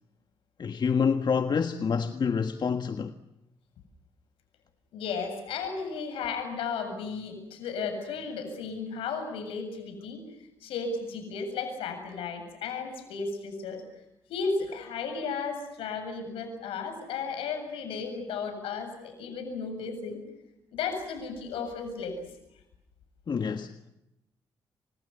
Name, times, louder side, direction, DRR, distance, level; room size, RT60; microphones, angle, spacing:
voice 1, 0.6-3.1 23.3-23.9, left 6 dB, 50° left, 1.6 m, -27 dB
voice 2, 4.9-10.2 10.6-13.8 14.3-20.2 20.7-22.3, left 5 dB, 80° left, 7.7 m, -34 dB
29.0 x 26.0 x 6.9 m
supercardioid pair, 50°, 9 cm